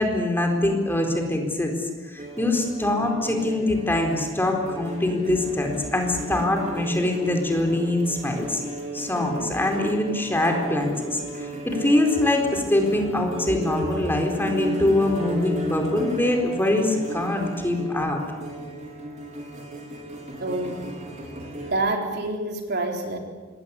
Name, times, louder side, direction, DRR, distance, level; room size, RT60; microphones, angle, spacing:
voice 1, 0.0-1.7 2.1-8.6 8.9-18.2, left 1 dB, 10° left, 2 dB, 4.3 m, -23 dB
sound 1, 2.2-21.7, right 1 dB, 40° right, 4.3 m, -35 dB
voice 2, 20.4-20.9 21.7-23.2, right 2 dB, 60° right, 2 dB, 4.0 m, -27 dB
26.5 x 21.5 x 8.5 m, 1.3 s
head